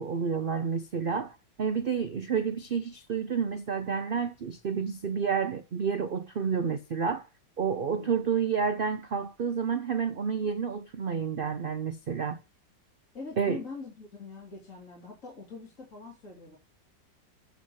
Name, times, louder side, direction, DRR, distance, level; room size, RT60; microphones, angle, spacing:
voice 1, 0.0-7.3 7.6-12.4 13.4-13.6, right 6 dB, 70° right, 0.5 m, -30 dB
voice 2, 8.0-8.3 13.1-16.6, left 4 dB, 45° left, 3.2 m, -43 dB
8.1 x 6.4 x 7.0 m
omnidirectional pair, 1.9 m